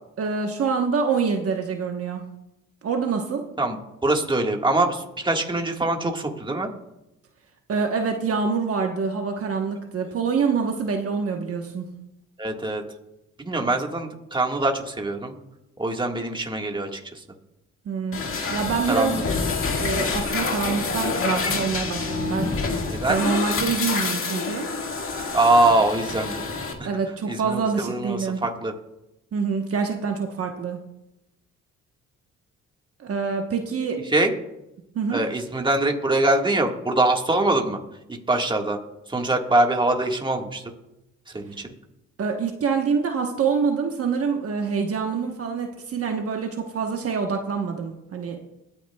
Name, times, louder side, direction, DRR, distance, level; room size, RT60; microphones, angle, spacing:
voice 1, 0.2-2.2 2.8-3.4 7.7-11.9 17.8-18.2 18.5-19.3 19.8-22.5 23.1-24.7 26.8-28.4 29.3-30.8 33.0-34.0 34.9-35.2 42.2-48.4, right 5 dB, 50° right, 3 dB, 1.1 m, -26 dB
voice 2, 4.0-6.7 12.4-12.8 13.4-15.3 15.8-17.2 18.9-19.2 22.9-23.2 25.3-26.4 26.8-26.9 27.3-28.7 34.1-34.3 35.1-37.8 38.3-38.8 39.1-40.6 41.3-41.7, right 2 dB, 15° right, 2 dB, 1.6 m, -23 dB
sound 1, 18.1-26.7, left 4 dB, 45° left, 1.9 m, -27 dB
22.5 x 8.9 x 2.3 m, 0.91 s
cardioid pair, 90°, 30 cm